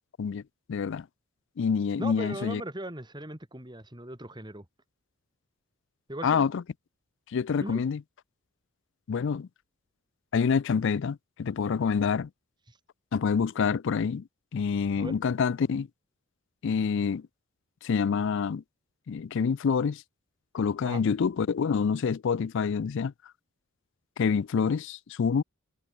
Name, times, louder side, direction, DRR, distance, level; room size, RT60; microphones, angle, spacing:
voice 1, 0.7-1.1 1.6-2.6 6.2-6.6 7.3-8.0 9.1-9.5 10.3-12.3 13.1-14.2 14.5-15.9 16.6-17.2 17.8-18.6 19.1-20.0 20.5-23.1 24.2-25.4, left 6 dB, 55° left, 0.4 m, -27 dB
voice 2, 2.0-4.6 6.1-6.5 7.6-7.8 12.7-12.8 15.0-15.1 20.8-21.0, right 1 dB, 20° right, 3.2 m, -38 dB
head